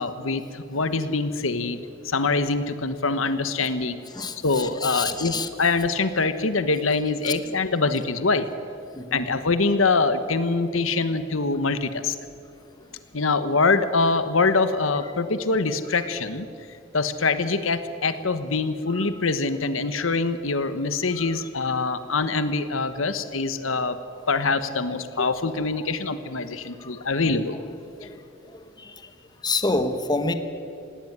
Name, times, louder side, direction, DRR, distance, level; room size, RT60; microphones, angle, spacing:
voice 1, 0.0-4.0 4.4-8.5 9.1-12.2 13.1-16.5 16.9-24.0 24.3-27.6, left 3 dB, 85° left, 1.2 m, -24 dB
voice 2, 4.8-5.5 9.0-9.2 28.0-28.2 28.8-29.0 29.4-30.3, left 3 dB, 20° left, 1.2 m, -26 dB
19.0 x 17.5 x 9.5 m
head